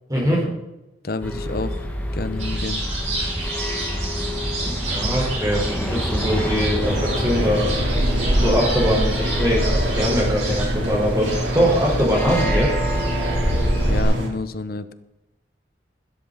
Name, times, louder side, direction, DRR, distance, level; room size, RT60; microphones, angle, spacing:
voice 1, 0.1-0.5 4.6-7.7 8.4-12.7, equal, 20° right, -3 dB, 4.2 m, -22 dB
voice 2, 1.0-1.9 2.1-2.8 13.8-14.9, left 3 dB, 55° left, 12 dB, 0.9 m, -29 dB
sound 1, 1.2-14.0, equal, 10° left, 1.8 m, -28 dB
sound 2, 2.4-14.0, right 1 dB, 40° right, 5.8 m, -27 dB
sound 3, 6.8-14.3, right 1 dB, 90° right, 3.4 m, -27 dB
15.5 x 13.0 x 4.1 m, 0.95 s
head